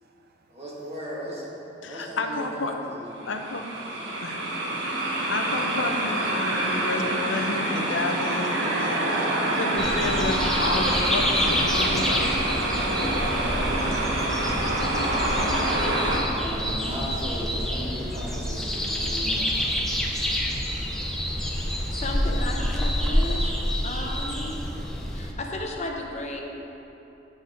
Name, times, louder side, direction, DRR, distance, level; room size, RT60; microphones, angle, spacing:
voice 1, 0.5-1.5 1.9-3.3 14.5-14.9 16.3-20.0 23.4-23.6, equal, 35° right, -7 dB, 1.8 m, -37 dB
voice 2, 1.8-2.7 3.3-3.7 4.2-4.5 5.3-9.3 9.5-12.3, left 2 dB, 90° left, 4 dB, 0.7 m, -30 dB
sound 1, 3.1-16.2, right 1 dB, 85° right, 1.2 m, -26 dB
voice 3, 8.6-9.1 9.5-9.6 12.7-13.8 18.7-20.3 21.2-22.1 24.5-24.7, right 3 dB, 55° right, 4 dB, 0.5 m, -57 dB
sound 2, 9.8-25.3, equal, ahead, 0.6 m, -28 dB
voice 4, 20.5-20.9 21.9-23.5 23.8-24.6 25.1-26.4, left 2 dB, 35° left, 1 dB, 0.7 m, -34 dB
10.5 x 4.2 x 5.0 m, 3.0 s
head